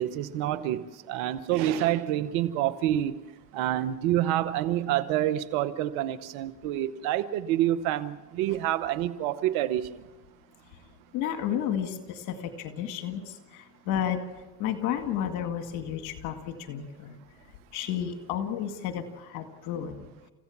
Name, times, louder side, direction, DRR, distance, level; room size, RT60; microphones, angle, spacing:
voice 1, 0.0-3.1 3.5-10.0, right 12 dB, 90° right, 14 dB, 1.0 m, -27 dB
voice 2, 11.1-13.2 13.5-14.2 14.6-17.2 17.7-20.0, left 9 dB, 90° left, 6 dB, 2.2 m, -32 dB
30.0 x 15.5 x 7.3 m, 1.2 s
supercardioid pair, 55°, 46 cm